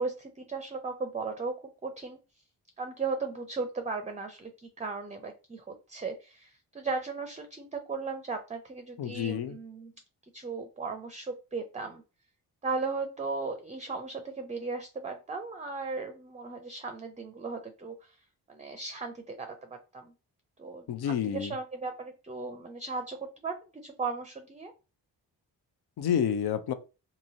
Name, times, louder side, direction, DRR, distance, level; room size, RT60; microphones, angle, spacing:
voice 1, 0.0-1.5 1.8-2.2 2.8-9.9 10.3-12.0 12.6-18.2 18.5-20.1 20.6-23.2 23.4-24.7, right 4 dB, 15° right, 0.5 m, -36 dB
voice 2, 9.0-9.5 20.9-21.5 26.0-26.7, left 9 dB, 60° left, 0.6 m, -29 dB
2.9 x 2.7 x 2.7 m
supercardioid pair, 40°, 43 cm